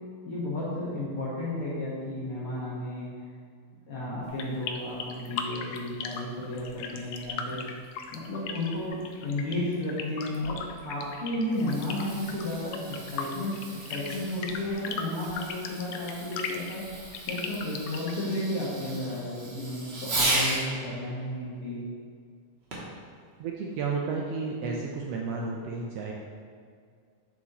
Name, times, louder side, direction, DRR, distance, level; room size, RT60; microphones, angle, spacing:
voice 1, 0.3-3.1 3.9-7.6 8.1-13.6 13.9-16.8 17.2-21.9, left 1 dB, 55° left, -8 dB, 2.1 m, -33 dB
sound 1, 4.2-18.2, left 6 dB, 80° left, 1.4 m, -38 dB
Fireworks, 11.4-20.7 22.7-23.0 23.7-23.8, right 2 dB, 50° right, 1.6 m, -35 dB
voice 2, 23.4-26.1, right 4 dB, 75° right, -1 dB, 1.5 m, -32 dB
8.2 x 7.4 x 3.0 m, 2.1 s
omnidirectional pair, 3.4 m